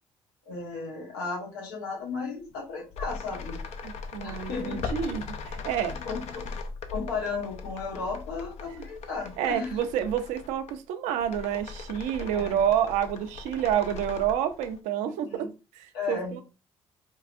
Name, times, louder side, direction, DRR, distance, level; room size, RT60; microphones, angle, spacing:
voice 1, 0.5-3.6 4.2-5.0 6.0-6.5 6.9-9.8 12.2-12.6 15.0-15.5 15.9-16.4, left 4 dB, 90° left, 0.9 m, -35 dB
sound 1, 2.5-2.6 2.9-10.8 11.1-14.8, left 4 dB, 65° left, 0.5 m, -39 dB
voice 2, 3.8-5.9 9.4-15.5 15.7-16.4, right 9 dB, 80° right, 0.5 m, -28 dB
4.5 x 2.3 x 2.4 m
hypercardioid pair, 55°, 12 cm